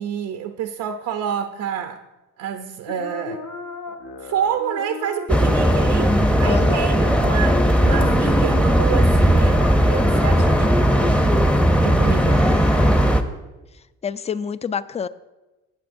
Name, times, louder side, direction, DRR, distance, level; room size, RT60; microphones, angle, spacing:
voice 1, 0.0-2.0 2.4-3.4 3.9-10.7 11.0-11.4 11.8-12.4, right 8 dB, 85° right, 6 dB, 0.6 m, -28 dB
sound 1, 2.9-12.2, left 4 dB, 70° left, 1.1 m, -35 dB
sound 2, 5.3-13.2, equal, 5° left, 0.7 m, -17 dB
voice 2, 6.4-6.9 12.3-13.2 14.0-15.1, left 6 dB, 20° left, 16 dB, 0.3 m, -29 dB
17.0 x 7.0 x 2.6 m, 1.1 s
cardioid pair, 90°, 30 cm